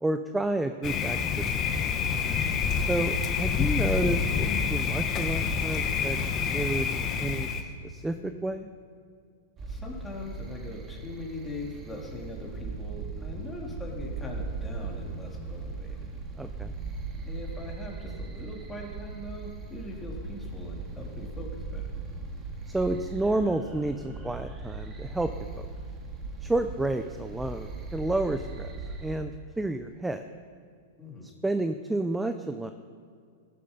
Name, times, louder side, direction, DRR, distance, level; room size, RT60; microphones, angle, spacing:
voice 1, 0.0-1.5 2.8-8.7 16.4-16.7 22.7-25.7 26.4-28.7 29.0-30.2 31.4-32.7, right 2 dB, 5° right, 9 dB, 0.6 m, -30 dB
Thunder, 0.8-7.6, left 6 dB, 30° left, 1.2 m, -27 dB
voice 2, 9.6-16.2 17.3-22.0 31.0-31.3, left 2 dB, 10° left, -2 dB, 3.2 m, -41 dB
sound 1, 9.6-29.2, right 3 dB, 25° right, 2.2 m, -38 dB
15.5 x 11.0 x 5.3 m, 2.3 s
hypercardioid pair, 125°, 0 cm